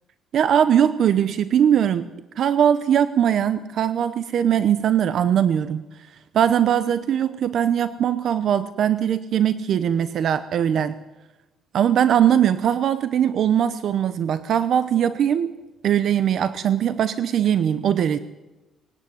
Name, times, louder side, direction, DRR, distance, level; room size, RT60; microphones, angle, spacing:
voice 1, 0.3-5.8 6.3-10.9 11.7-15.6 15.8-18.2, right 9 dB, 55° right, 13 dB, 0.9 m, -20 dB
20.0 x 18.0 x 9.5 m, 1.1 s
cardioid pair, 140°, 0 cm